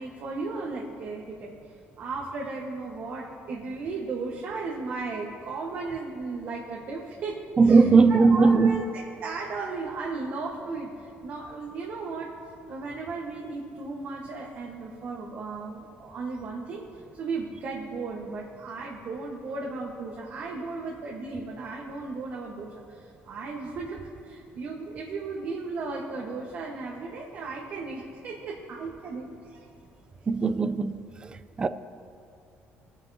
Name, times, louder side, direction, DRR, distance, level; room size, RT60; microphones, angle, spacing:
voice 1, 0.0-1.6 2.0-12.4 12.7-29.7, right 3 dB, 50° right, 1.3 m, -35 dB
voice 2, 7.6-8.8 30.3-30.9 31.2-31.3 31.6-31.7, right 4 dB, 20° right, 0.4 m, -18 dB
22.5 x 9.2 x 2.8 m
cardioid pair, 160°, 4 cm